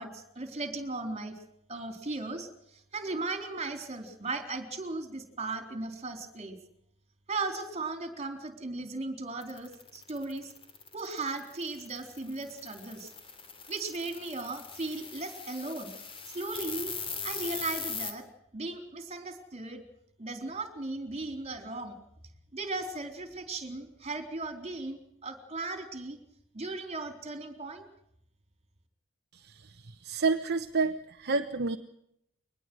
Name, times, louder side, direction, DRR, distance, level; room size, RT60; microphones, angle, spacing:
voice 1, 0.0-1.4 1.7-2.5 2.9-6.6 7.3-10.5 10.9-13.1 13.7-15.9 16.3-16.9 17.2-18.2 18.5-19.8 20.2-22.0 22.5-26.2 26.5-27.8, right 3 dB, 30° right, 6 dB, 3.9 m, -37 dB
sound 1, 9.4-18.1, left 5 dB, 25° left, 3.1 m, -41 dB
voice 2, 29.3-31.8, right 4 dB, 50° right, 6 dB, 1.0 m, -30 dB
23.0 x 20.0 x 6.3 m, 0.75 s
head